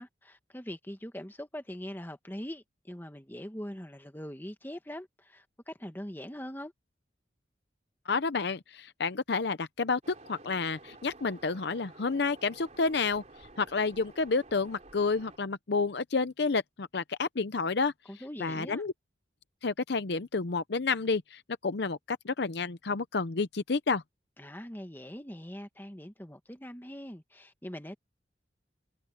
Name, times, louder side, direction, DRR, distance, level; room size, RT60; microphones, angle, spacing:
voice 1, 0.0-6.7 18.1-18.8 24.4-28.0, equal, 10° left, 1.6 m, -42 dB
voice 2, 8.1-13.2 13.6-17.9 18.4-18.9 19.6-24.0, left 4 dB, 60° left, 0.7 m, -30 dB
Waves surf, 10.0-15.4, right 2 dB, 40° right, 3.6 m, -52 dB
head